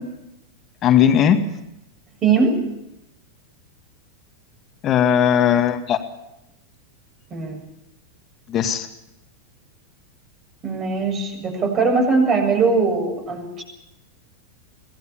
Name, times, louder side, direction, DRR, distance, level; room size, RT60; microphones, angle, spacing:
voice 1, 0.8-1.4 4.8-6.0 8.5-8.9, left 9 dB, 30° left, 7 dB, 2.0 m, -17 dB
voice 2, 2.2-2.6 7.3-7.6 10.6-13.6, right 4 dB, 30° right, 4 dB, 7.0 m, -20 dB
24.5 x 18.5 x 7.3 m, 0.86 s
figure-of-eight pair, 90°, 0 cm